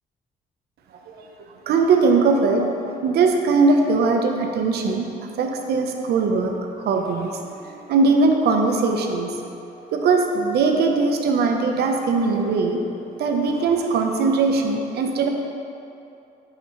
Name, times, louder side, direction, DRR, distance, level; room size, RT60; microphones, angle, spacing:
voice 1, 1.7-5.1 5.4-12.8 13.2-15.3, right 4 dB, 85° right, 3 dB, 0.8 m, -20 dB
8.3 x 7.8 x 3.1 m, 2.8 s
cardioid pair, 140°, 16 cm